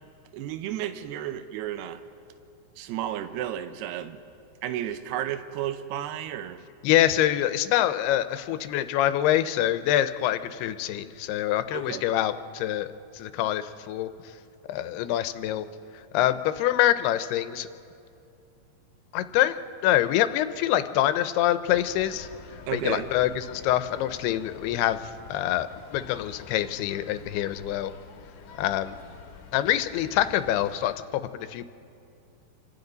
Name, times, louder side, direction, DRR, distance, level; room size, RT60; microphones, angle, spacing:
voice 1, 0.3-2.0 2.8-4.2 4.6-6.6 11.7-12.0 22.7-23.1, right 11 dB, 85° right, 9 dB, 2.8 m, -32 dB
voice 2, 6.8-12.9 13.1-14.1 14.7-15.7 16.1-17.7 19.1-19.6 19.8-22.3 22.7-27.9 28.6-29.0 29.5-31.7, left 12 dB, 85° left, 11 dB, 2.7 m, -25 dB
sound 1, 21.7-30.9, left 6 dB, 65° left, 2.8 m, -47 dB
28.5 x 25.5 x 4.0 m, 2.5 s
omnidirectional pair, 4.5 m